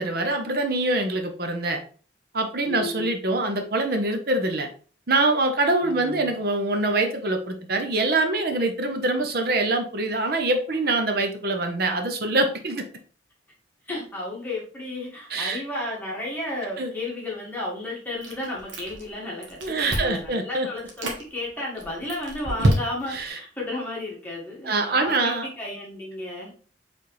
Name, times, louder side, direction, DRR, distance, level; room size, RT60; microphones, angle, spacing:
voice 1, 0.0-1.8 2.3-4.7 5.1-12.8 15.3-15.6 16.8-16.9 19.6-20.7 23.1-23.3 24.6-25.5, right 2 dB, 55° right, 5 dB, 0.7 m, -24 dB
voice 2, 2.6-3.1 5.8-6.4 13.8-26.5, left 2 dB, 10° left, -4 dB, 1.6 m, -33 dB
Chewing mastication, 18.2-19.1 19.4-20.3 20.8-21.2 21.8-23.2, right 1 dB, 80° right, 1.1 m, -26 dB
4.8 x 3.5 x 3.1 m, 0.42 s
head